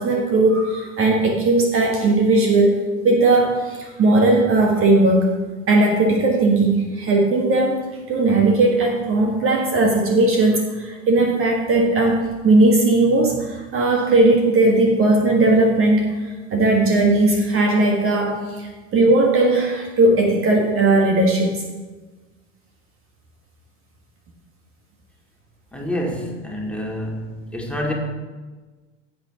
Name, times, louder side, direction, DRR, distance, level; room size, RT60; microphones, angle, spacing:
voice 1, 0.0-5.3 5.7-7.8 8.1-16.1 16.5-21.6, right 2 dB, 35° right, 1 dB, 1.6 m, -17 dB
voice 2, 25.7-27.9, left 1 dB, 5° left, -2 dB, 2.3 m, -27 dB
16.0 x 8.2 x 3.0 m, 1.3 s
figure-of-eight pair, 70°, 37 cm